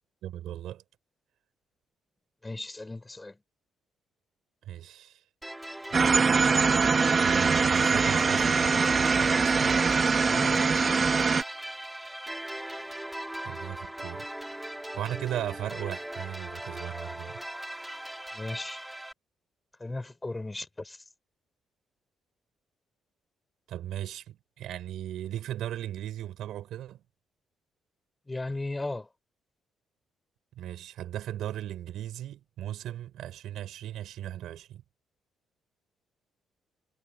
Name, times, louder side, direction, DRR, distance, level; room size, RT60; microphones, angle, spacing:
voice 1, 0.2-0.8 4.6-5.2 7.2-9.8 13.4-14.3 15.0-17.4 23.7-27.0 30.6-34.8, right 12 dB, 80° right, 5.9 m, -37 dB
voice 2, 2.4-3.4 10.2-10.7 18.3-18.8 19.8-21.0 28.3-29.1, left 2 dB, 15° left, 4.5 m, -36 dB
sound 1, 5.4-19.1, right 1 dB, 5° right, 3.9 m, -39 dB
sound 2, 5.9-11.4, right 5 dB, 40° right, 1.6 m, -23 dB
cardioid pair, 90°, 0 cm